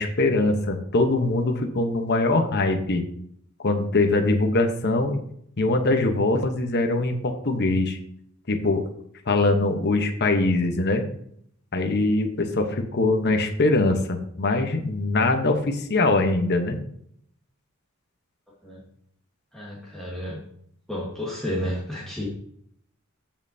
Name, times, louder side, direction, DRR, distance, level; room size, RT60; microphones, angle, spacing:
voice 1, 0.0-3.0 3.6-5.2 5.6-8.0 8.5-8.8 9.3-11.0 11.7-16.8, left 2 dB, 55° left, 5 dB, 1.0 m, -22 dB
voice 2, 19.5-20.4 20.9-22.3, equal, 5° left, -6 dB, 1.5 m, -31 dB
14.0 x 5.4 x 2.8 m, 0.67 s
head